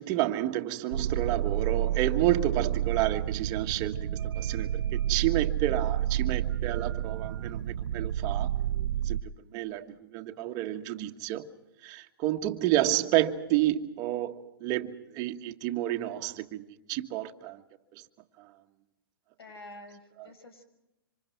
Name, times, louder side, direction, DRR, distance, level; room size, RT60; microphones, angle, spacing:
voice 1, 0.0-8.5 9.0-11.5 11.8-17.6 17.9-18.0 18.4-18.5 20.2-20.3, right 14 dB, 30° right, 1.5 m, -30 dB
sound 1, 0.9-9.2, right 11 dB, 80° right, 0.8 m, -30 dB
voice 2, 19.4-20.6, left 1 dB, 85° left, 6.1 m, -48 dB
26.5 x 26.0 x 4.6 m
hypercardioid pair, 145°, 13 cm